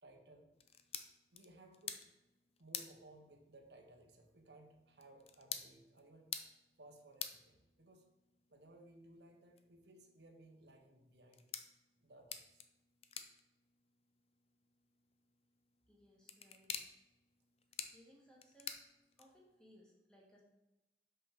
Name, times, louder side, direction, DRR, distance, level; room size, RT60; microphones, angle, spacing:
voice 1, 0.0-0.5 1.3-2.0 2.6-6.3 6.8-8.1 8.5-11.5 12.0-12.6, right 1 dB, 75° right, 3 dB, 1.1 m, -61 dB
sound 1, 0.5-19.6, left 8 dB, 35° left, 0.5 m, -51 dB
voice 2, 15.9-16.7 17.8-18.8 19.2-20.4, equal, 5° left, -3 dB, 1.6 m, -65 dB
6.1 x 5.7 x 5.3 m, 0.97 s
head